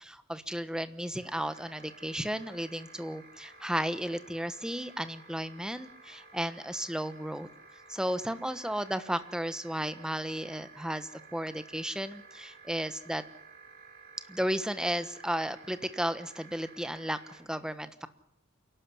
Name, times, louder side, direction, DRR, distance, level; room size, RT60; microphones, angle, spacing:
voice 1, 0.0-7.5 7.9-13.2 14.3-18.1, equal, 5° right, 11 dB, 1.2 m, -34 dB
sound 1, 1.1-17.4, right 4 dB, 50° right, 6.6 m, -54 dB
27.5 x 12.0 x 9.7 m, 0.76 s
head